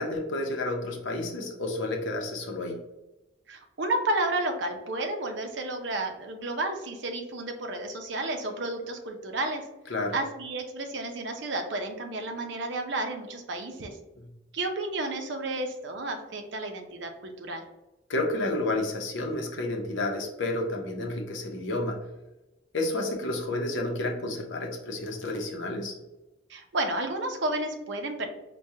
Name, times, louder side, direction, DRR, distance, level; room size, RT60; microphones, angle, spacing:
voice 1, 0.0-2.8 9.9-10.2 14.2-14.3 18.1-22.0 22.7-26.0, left 2 dB, 70° left, 2 dB, 0.7 m, -30 dB
voice 2, 3.5-9.6 10.1-14.0 14.5-17.6 26.5-28.3, right 2 dB, 65° right, 4 dB, 0.6 m, -31 dB
4.7 x 2.2 x 2.7 m, 1.0 s
head